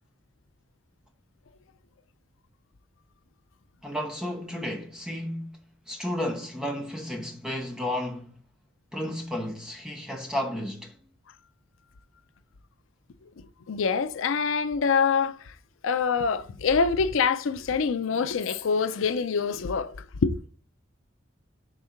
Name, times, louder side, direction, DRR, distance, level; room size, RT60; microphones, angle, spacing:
voice 1, 3.8-5.6 5.9-8.4 8.9-10.9, left 1 dB, 5° right, 0.9 m, -32 dB
voice 2, 13.7-15.4 15.8-19.9 20.2-20.4, left 5 dB, 80° left, 0.5 m, -25 dB
5.0 x 3.5 x 5.6 m
head